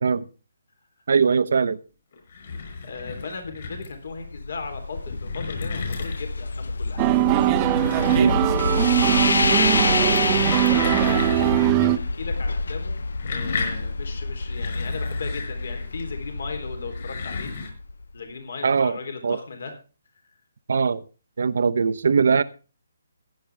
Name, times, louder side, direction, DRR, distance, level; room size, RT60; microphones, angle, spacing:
voice 1, 1.1-1.8 8.2-8.4 18.6-19.0 19.2-19.4 20.7-21.0 21.4-22.4, right 5 dB, 70° right, 0.9 m, -20 dB
sound 1, 2.1-4.1 4.8-6.5 7.5-8.9 9.2-9.7 10.1-11.8 12.1-12.2 12.9-16.0 16.8-17.7, left 5 dB, 50° left, 5.6 m, -34 dB
voice 2, 2.8-7.0 9.4-12.9 13.2-17.5 18.1-19.7, left 4 dB, 65° left, 3.6 m, -37 dB
sound 2, 3.9-18.1, left 3 dB, 85° left, 0.6 m, -27 dB
sound 3, 7.0-12.0, right 15 dB, 20° right, 0.7 m, -21 dB
15.5 x 10.5 x 3.5 m
hypercardioid pair, 165°, 0 cm